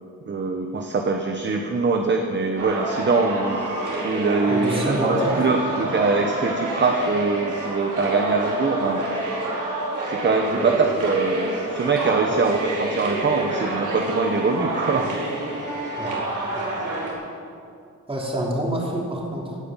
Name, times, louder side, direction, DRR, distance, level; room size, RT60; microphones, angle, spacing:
voice 1, 0.3-3.6 4.0-9.0 10.1-15.1, right 4 dB, 35° right, 3 dB, 1.1 m, -23 dB
sound 1, 2.6-17.1, right 2 dB, 70° right, 4.6 m, -28 dB
voice 2, 4.5-5.4 10.6-10.7 12.3-12.4 16.0-16.2 16.5-16.7 18.1-19.6, right 1 dB, 15° right, -2 dB, 3.2 m, -27 dB
17.0 x 9.5 x 9.0 m, 2.4 s
wide cardioid pair, 165°, 32 cm